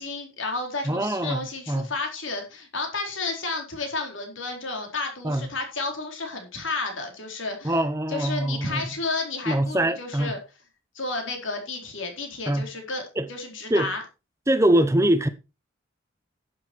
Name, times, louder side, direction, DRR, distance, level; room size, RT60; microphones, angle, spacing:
voice 1, 0.0-7.8 8.1-10.4 10.9-13.0 13.3-14.0, left 3 dB, 75° left, 4.1 m, -32 dB
voice 2, 0.9-1.9 5.2-5.5 7.6-8.8 9.5-10.3 12.5-12.7 13.2-13.3 13.7-13.9 14.5-15.3, right 1 dB, 15° right, 0.8 m, -23 dB
11.5 x 8.1 x 4.5 m
head